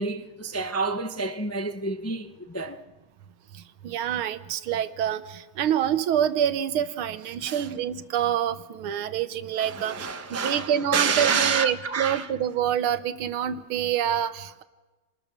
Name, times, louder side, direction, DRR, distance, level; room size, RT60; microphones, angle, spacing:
voice 1, 0.0-2.8 7.4-7.7 9.6-12.3, right 4 dB, 15° left, 0.6 m, -28 dB
voice 2, 3.8-14.6, right 9 dB, 80° right, 1.8 m, -27 dB
28.0 x 20.0 x 6.1 m
omnidirectional pair, 2.3 m